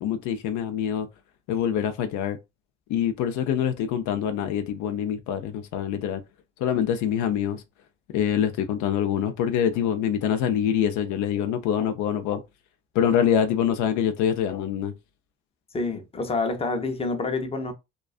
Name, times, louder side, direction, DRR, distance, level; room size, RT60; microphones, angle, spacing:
voice 1, 0.0-1.1 1.5-2.4 2.9-6.2 6.6-7.6 8.1-12.4 12.9-14.9, left 9 dB, 65° left, 0.5 m, -25 dB
voice 2, 15.7-17.7, left 3 dB, 20° left, 0.6 m, -27 dB
2.3 x 2.3 x 2.4 m
supercardioid pair, 70°, 31 cm